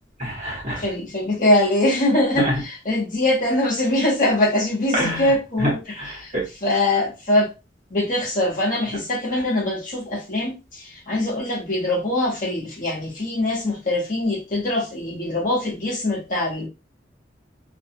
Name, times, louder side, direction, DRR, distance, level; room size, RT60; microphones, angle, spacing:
voice 1, 0.2-0.8 2.4-2.6 4.9-5.3 5.6-5.7 6.0-6.4, equal, 40° right, -3 dB, 1.2 m, -25 dB
voice 2, 0.8-6.3 6.6-7.5 7.9-16.7, left 1 dB, 45° left, -2 dB, 1.0 m, -23 dB
2.6 x 2.3 x 2.7 m, 0.27 s
head